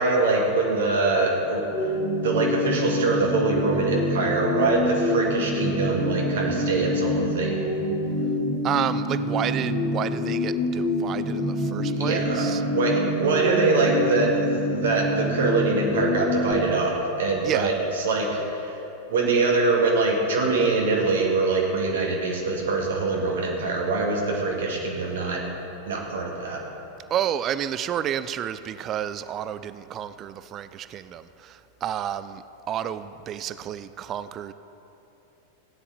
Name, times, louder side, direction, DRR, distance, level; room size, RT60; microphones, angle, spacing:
voice 1, 0.0-1.9 2.2-7.8 11.9-18.8 19.1-25.4 25.9-26.6, right 3 dB, 60° right, -1 dB, 1.9 m, -24 dB
sound 1, 1.7-16.5, left 1 dB, 45° left, 2.9 m, -26 dB
voice 2, 8.6-12.6 17.4-17.7 27.1-34.5, right 10 dB, 30° right, 13 dB, 0.4 m, -30 dB
15.5 x 9.7 x 4.3 m, 2.9 s
figure-of-eight pair, 90°, 0 cm